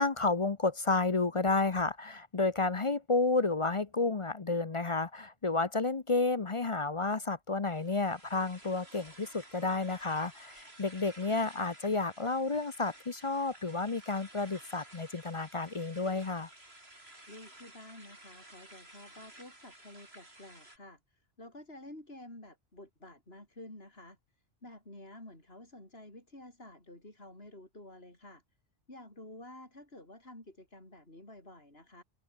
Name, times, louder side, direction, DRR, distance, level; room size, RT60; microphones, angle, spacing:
voice 1, 0.0-16.5, left 3 dB, 30° left, 0.7 m, -31 dB
sound 1, 7.7-20.8, right 1 dB, 60° right, 7.8 m, -54 dB
voice 2, 17.3-24.2 24.6-28.4 28.9-32.0, left 1 dB, 55° left, 7.3 m, -51 dB
omnidirectional pair, 1.2 m